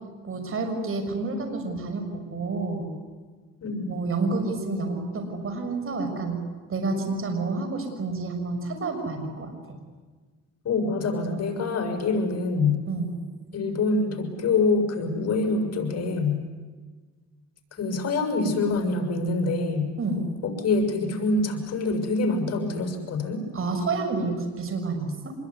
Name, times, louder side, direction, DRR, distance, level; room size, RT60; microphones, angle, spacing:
voice 1, 0.2-2.9 3.9-6.4 6.7-9.5 11.2-11.4 12.9-13.1 20.0-20.2 23.5-25.3, right 3 dB, 45° right, 5 dB, 6.4 m, -29 dB
voice 2, 3.6-3.9 10.6-12.8 13.5-16.4 17.7-19.9 20.4-23.4, left 3 dB, 55° left, 5 dB, 6.6 m, -25 dB
26.0 x 22.5 x 9.8 m, 1.4 s
cardioid pair, 90°, 30 cm